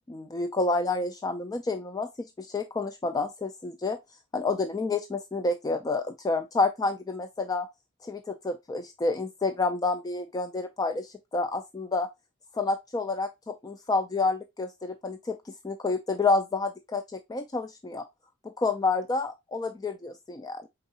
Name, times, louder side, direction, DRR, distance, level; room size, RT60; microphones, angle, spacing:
voice 1, 0.1-4.0 4.3-7.7 8.0-12.1 12.5-18.1 18.4-20.7, left 3 dB, 20° left, 0.3 m, -29 dB
4.4 x 3.9 x 2.7 m
head